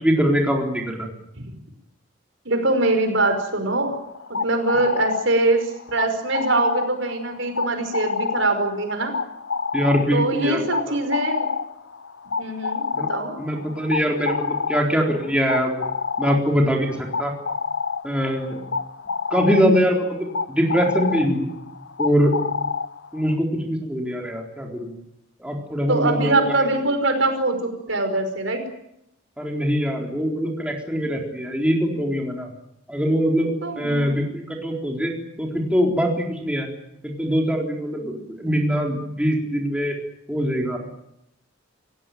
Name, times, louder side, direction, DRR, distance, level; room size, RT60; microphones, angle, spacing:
voice 1, 0.0-1.1 9.7-11.0 12.9-13.1 13.4-15.7 16.2-17.3 18.0-18.6 19.3-21.5 22.0-22.3 23.1-24.9 25.4-26.6 29.4-32.5 32.9-35.1 35.4-36.7 37.0-40.0 40.3-40.8, equal, 5° right, 0 dB, 4.0 m, -23 dB
voice 2, 2.5-4.0 4.3-9.1 10.1-11.5 12.4-13.3 25.9-28.6 33.6-34.1, right 2 dB, 70° right, 6 dB, 5.3 m, -23 dB
sound 1, 3.9-23.4, left 5 dB, 65° left, 0.9 m, -29 dB
29.0 x 16.5 x 9.3 m, 0.80 s
head